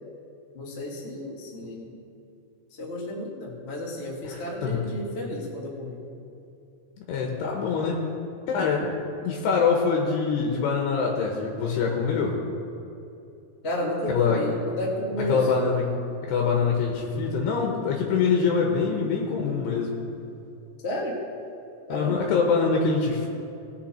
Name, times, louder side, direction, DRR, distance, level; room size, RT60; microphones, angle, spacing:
voice 1, 0.5-2.0 2.8-6.0 13.6-15.5 20.8-21.2 21.9-22.2, left 1 dB, 30° left, -4 dB, 1.2 m, -32 dB
voice 2, 4.2-4.8 7.1-8.0 8.5-8.9 9.2-12.4 14.1-14.5 15.3-20.0 21.9-23.3, left 5 dB, 85° left, 0 dB, 3.2 m, -24 dB
19.0 x 6.9 x 4.4 m, 2.8 s
omnidirectional pair, 4.7 m